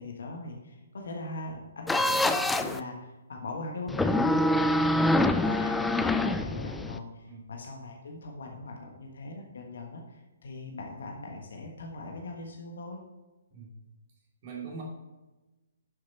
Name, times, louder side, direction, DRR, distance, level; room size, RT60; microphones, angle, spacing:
voice 1, 0.0-4.9 5.4-13.0, left 2 dB, 55° left, 1 dB, 1.4 m, -40 dB
sound 1, 1.9-2.8 3.9-7.0, left 1 dB, 5° left, 0.4 m, -25 dB
voice 2, 4.9-5.3 7.3-7.4 13.5-13.7 14.4-14.8, right 5 dB, 35° right, -2 dB, 2.9 m, -41 dB
11.0 x 6.6 x 4.3 m, 1.1 s
figure-of-eight pair, 125°, 0 cm